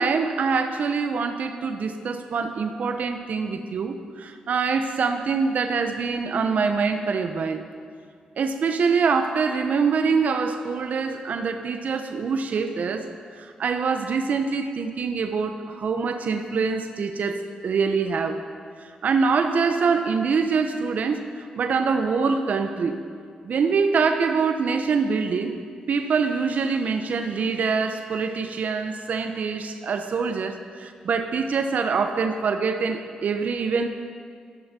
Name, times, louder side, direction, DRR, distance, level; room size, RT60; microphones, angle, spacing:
voice 1, 0.0-7.6 8.4-13.1 13.4-18.5 19.0-21.2 21.6-22.9 23.4-25.6 25.9-33.9, right 5 dB, 65° right, 7 dB, 1.1 m, -24 dB
24.0 x 11.0 x 4.5 m, 2.1 s
supercardioid pair, 50°, 3 cm